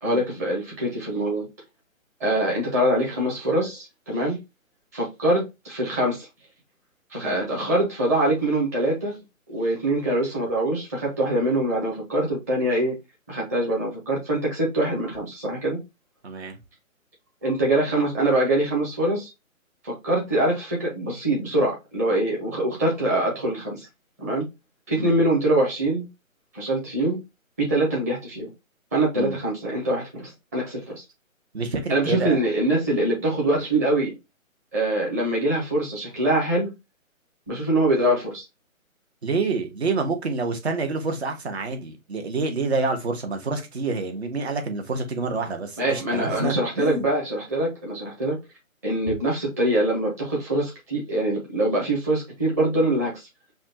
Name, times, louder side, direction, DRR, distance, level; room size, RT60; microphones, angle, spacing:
voice 1, 0.0-1.5 2.2-4.4 4.9-6.3 7.1-9.2 9.5-13.0 13.3-15.8 17.4-19.3 19.8-23.9 24.2-24.5 24.9-26.1 26.5-27.2 27.6-28.5 28.9-31.0 31.9-34.1 34.7-36.7 37.5-38.4 45.8-48.4 48.8-53.3, right 1 dB, 10° right, 0.9 m, -24 dB
voice 2, 16.2-16.6 25.0-25.1 29.1-29.4 31.5-32.4 39.2-47.1, right 3 dB, 50° right, 1.2 m, -28 dB
5.4 x 2.4 x 2.8 m
hypercardioid pair, 160°, 42 cm